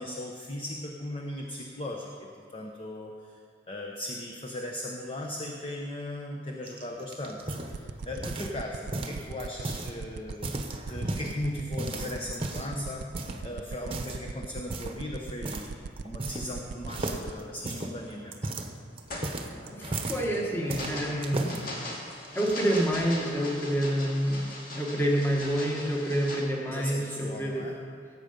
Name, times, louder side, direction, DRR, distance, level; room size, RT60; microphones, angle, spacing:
voice 1, 0.0-3.4 3.7-18.4 26.7-27.8, left 1 dB, 30° left, 1 dB, 0.8 m, -38 dB
sound 1, 6.7-8.6 8.9-9.9 10.3-11.3 11.8-12.8 13.1-13.4 13.8-14.2 14.7-15.0 15.4-15.7 16.0-16.6 16.9-20.2 20.7-21.6 22.2-22.8, right 2 dB, 30° right, 1.0 m, -35 dB
sound 2, 7.7-17.3, right 4 dB, 60° right, 0.4 m, -37 dB
sound 3, 18.0-18.3 18.8-26.4, left 1 dB, 50° left, 2.4 m, -40 dB
voice 2, 19.6-21.8 22.3-27.7, equal, 10° left, -2 dB, 1.4 m, -28 dB
16.5 x 7.8 x 5.2 m, 2.2 s
head